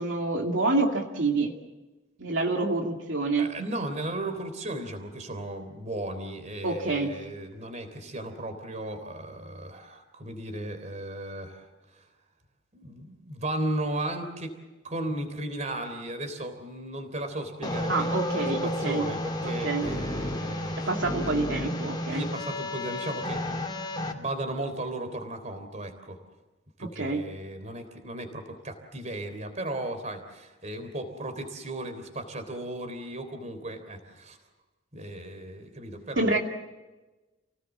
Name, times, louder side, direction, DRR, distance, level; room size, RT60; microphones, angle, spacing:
voice 1, 0.0-1.5 2.2-3.5 6.6-7.1 17.9-19.1 19.4-19.9 20.9-22.2 26.8-27.2 36.2-36.4, right 3 dB, 70° right, 1 dB, 2.5 m, -27 dB
voice 2, 3.4-12.0 12.7-14.6 14.8-20.9 21.2-21.5 22.1-23.4 24.0-26.2 26.8-34.4 34.9-36.4, right 1 dB, 35° right, 8 dB, 3.4 m, -36 dB
sound 1, 17.6-24.1, left 1 dB, 20° left, 2.7 m, -32 dB
29.5 x 18.5 x 7.4 m, 1.1 s
head